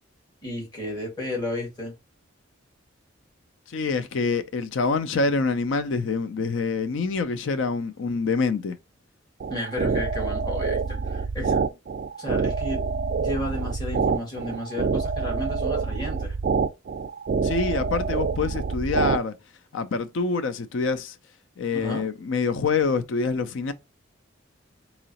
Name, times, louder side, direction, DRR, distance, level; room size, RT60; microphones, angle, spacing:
voice 1, 0.4-1.9 9.5-11.6 12.2-12.8 13.2-16.3 21.7-22.1, left 1 dB, 20° left, 1.8 m, -33 dB
voice 2, 3.7-8.8 17.4-19.3 19.7-21.2 21.6-23.7, left 4 dB, 65° left, 0.4 m, -26 dB
sound 1, 9.4-19.2, right 5 dB, 45° right, 0.3 m, -26 dB
3.8 x 3.0 x 2.8 m
head